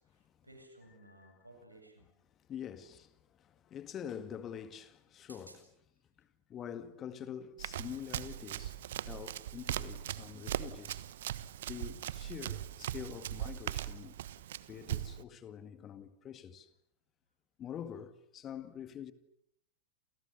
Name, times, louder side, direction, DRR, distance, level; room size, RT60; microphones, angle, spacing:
voice 1, 0.0-2.1 5.3-5.6, right 1 dB, 85° right, 7.9 m, -57 dB
voice 2, 2.5-5.6 6.2-11.0 11.7-14.1 14.7-16.7 17.6-19.1, left 9 dB, 30° left, 2.0 m, -46 dB
Run, 7.6-15.2, right 12 dB, 60° right, 1.2 m, -40 dB
29.5 x 29.0 x 6.9 m
figure-of-eight pair, 90°, 0 cm